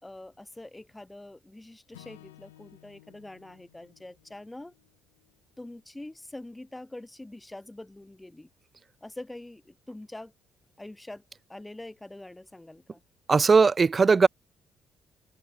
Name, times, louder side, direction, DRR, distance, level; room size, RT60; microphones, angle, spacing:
voice 1, 0.0-4.7 5.6-8.5 9.0-10.3 10.8-11.2 11.5-13.0, left 1 dB, 15° left, 1.9 m, -44 dB
Acoustic guitar / Strum, 1.9-6.2, left 15 dB, 85° left, 2.1 m, -56 dB
voice 2, 13.3-14.3, right 4 dB, 35° right, 0.4 m, -19 dB
open air
hypercardioid pair, 50°, 0 cm